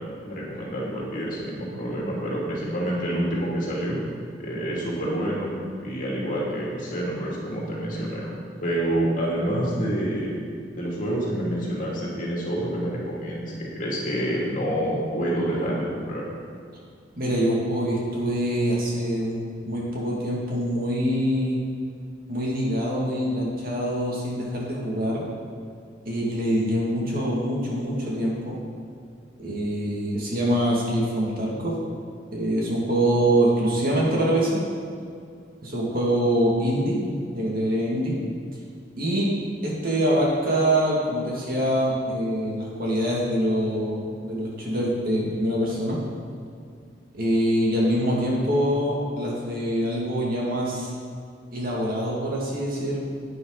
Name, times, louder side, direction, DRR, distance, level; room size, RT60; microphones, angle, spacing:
voice 1, 0.2-4.0 4.4-5.5 5.8-8.3 8.6-10.3 10.7-16.3, right 1 dB, 45° left, -4 dB, 2.7 m, -27 dB
voice 2, 17.2-21.6 22.3-25.3 26.1-28.6 29.4-31.8 32.3-34.6 35.6-37.0 37.3-38.2 39.0-39.3 39.6-46.0 47.1-50.9 51.5-53.0, equal, 50° right, -4 dB, 2.4 m, -24 dB
11.5 x 9.4 x 4.1 m, 2.3 s
head